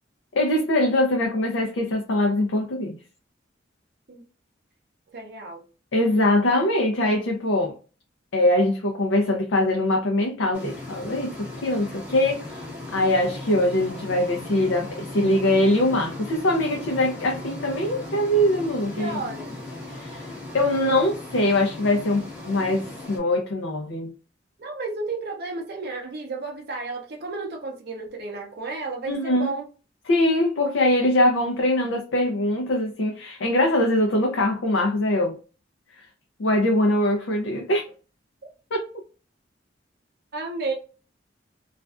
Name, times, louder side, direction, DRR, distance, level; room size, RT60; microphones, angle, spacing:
voice 1, 0.3-3.0 5.9-7.8 8.3-12.6 12.9-19.1 19.9-20.3 20.5-24.1 29.1-29.5 30.1-35.4 36.0-36.1 36.4-37.8 38.7-38.9, left 1 dB, 90° left, 0.5 m, -22 dB
voice 2, 5.1-5.6 19.0-19.5 24.6-29.7 40.3-40.7, right 3 dB, 55° right, 0.5 m, -32 dB
sound 1, 10.5-23.2, left 2 dB, 10° right, 0.8 m, -37 dB
2.4 x 2.2 x 2.3 m
head